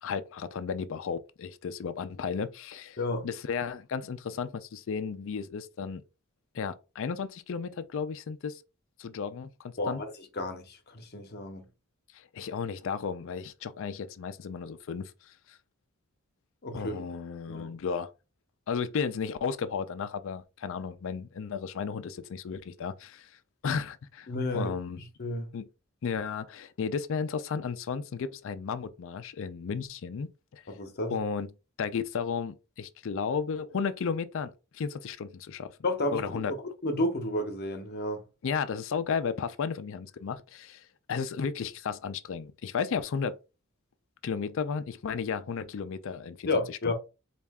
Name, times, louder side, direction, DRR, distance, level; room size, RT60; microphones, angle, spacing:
voice 1, 0.0-3.0 3.2-6.0 6.5-8.6 9.0-10.0 12.1-15.6 16.7-18.1 18.7-23.4 23.6-24.3 24.5-25.0 25.5-25.7 26.0-30.6 31.1-31.5 31.8-35.7 36.1-36.5 38.4-43.4 44.2-46.5 46.8-46.9, left 6 dB, 65° left, 0.4 m, -34 dB
voice 2, 3.0-3.3 9.8-10.1 10.3-11.7 16.6-17.0 17.5-17.7 24.3-25.5 30.7-31.2 35.8-38.2 46.4-46.9, left 2 dB, 50° left, 0.8 m, -32 dB
4.2 x 2.4 x 3.5 m
head